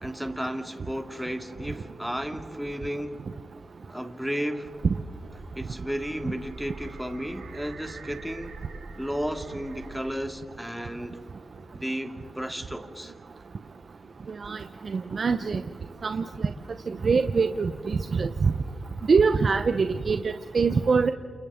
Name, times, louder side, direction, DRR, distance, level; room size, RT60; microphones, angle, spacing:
voice 1, 0.0-3.2 3.9-4.7 5.6-8.6 9.0-11.2 11.7-13.1, equal, ahead, 2.2 m, -33 dB
sound 1, 4.5-10.5, right 3 dB, 90° right, 2.6 m, -45 dB
voice 2, 14.3-15.6 16.0-16.5 16.9-18.5 19.1-21.1, right 5 dB, 60° right, 0.8 m, -24 dB
29.5 x 28.5 x 3.7 m
cardioid pair, 55°, 0 cm